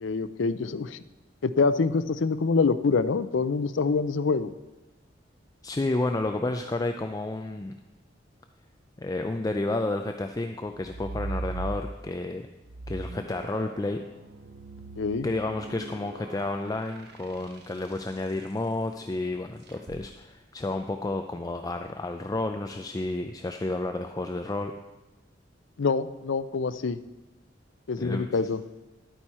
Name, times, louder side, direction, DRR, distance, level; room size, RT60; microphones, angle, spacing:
voice 1, 0.0-1.0 1.4-4.5 15.0-15.3 25.8-27.0 27.9-28.6, left 4 dB, 85° left, 13 dB, 0.5 m, -25 dB
voice 2, 5.6-7.7 9.0-12.5 12.9-14.0 15.2-24.7 28.0-28.2, left 2 dB, 20° left, 6 dB, 0.4 m, -31 dB
sound 1, 10.7-12.2 12.6-18.1 19.7-20.0, right 2 dB, 60° right, 1.1 m, -39 dB
11.5 x 9.1 x 4.3 m, 1.1 s
head